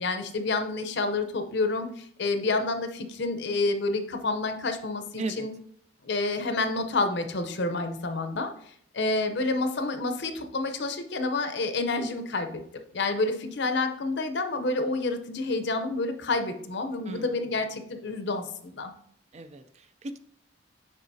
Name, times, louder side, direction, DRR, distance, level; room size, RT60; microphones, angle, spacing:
voice 1, 0.0-5.5 6.0-8.5 8.9-12.6 12.9-18.9, left 3 dB, 60° left, 7 dB, 0.7 m, -29 dB
voice 2, 5.2-5.5 17.1-17.5 19.3-20.2, right 2 dB, 35° right, 10 dB, 0.4 m, -37 dB
9.9 x 3.8 x 2.7 m, 0.64 s
head